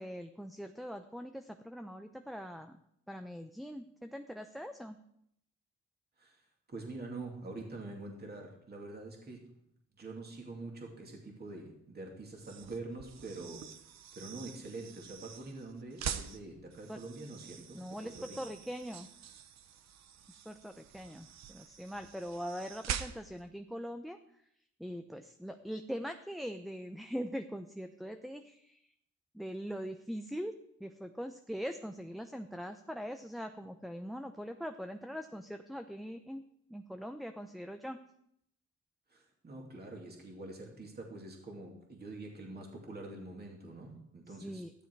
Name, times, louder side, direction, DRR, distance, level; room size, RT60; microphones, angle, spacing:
voice 1, 0.0-2.8 3.1-5.0 16.9-17.0 17.7-19.1 20.3-24.2 24.8-28.9 29.3-36.4 36.7-38.0 44.3-44.7, equal, ahead, 8 dB, 0.7 m, -42 dB
voice 2, 6.7-9.5 10.0-13.7 14.1-18.4 39.1-44.6, right 2 dB, 30° right, 0 dB, 2.8 m, -45 dB
sound 1, 12.3-23.5, right 9 dB, 60° right, 1.0 m, -45 dB
13.5 x 12.0 x 4.7 m, 0.75 s
cardioid pair, 90°, 30 cm